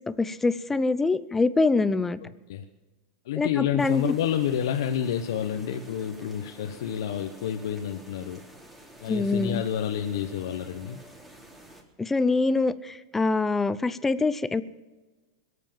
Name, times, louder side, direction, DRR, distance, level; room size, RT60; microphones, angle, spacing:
voice 1, 0.1-2.2 3.4-4.1 9.1-9.6 12.0-14.6, left 3 dB, 10° left, 15 dB, 0.7 m, -24 dB
voice 2, 2.2-2.6 3.2-8.4 9.0-11.0, left 9 dB, 75° left, 5 dB, 1.1 m, -29 dB
sound 1, 3.8-11.8, right 1 dB, 10° right, 3.5 m, -49 dB
21.5 x 8.4 x 7.5 m, 1.2 s
supercardioid pair, 120°, 2 cm